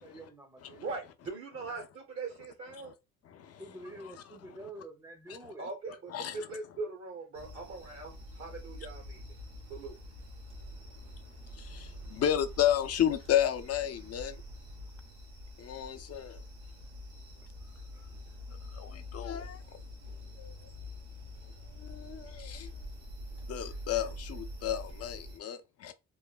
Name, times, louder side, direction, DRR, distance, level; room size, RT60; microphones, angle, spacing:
voice 1, 0.0-0.9 3.6-5.7, right 1 dB, 10° right, 0.6 m, -47 dB
voice 2, 0.8-2.9 5.6-9.2 9.7-10.0, right 3 dB, 45° right, 0.8 m, -41 dB
voice 3, 3.3-3.6 4.0-4.1 5.3-5.4 6.1-6.4 11.5-14.4 15.6-16.4 18.7-19.6 20.4-20.5 21.8-22.7 23.5-25.9, left 10 dB, 55° left, 0.5 m, -32 dB
sound 1, 7.3-25.4, left 1 dB, 80° right, 0.9 m, -46 dB
3.1 x 2.1 x 2.3 m
cardioid pair, 90°, 30 cm